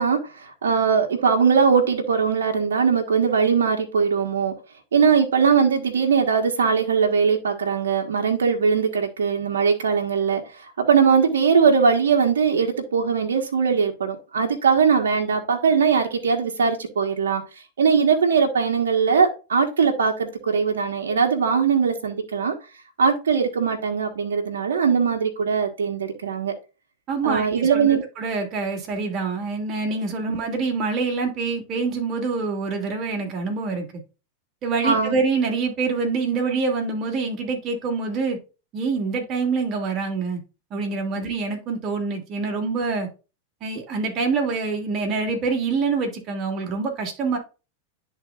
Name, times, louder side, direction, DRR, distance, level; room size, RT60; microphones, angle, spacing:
voice 1, 0.0-4.5 4.9-17.4 17.8-22.5 23.0-26.5 27.2-28.0 34.8-35.1, right 6 dB, 90° right, 1.2 m, -20 dB
voice 2, 27.1-33.9 34.6-38.4 38.7-40.4 40.7-43.1 43.6-47.4, right 4 dB, 40° right, 2.4 m, -26 dB
11.0 x 3.9 x 2.4 m
hypercardioid pair, 110°, 0 cm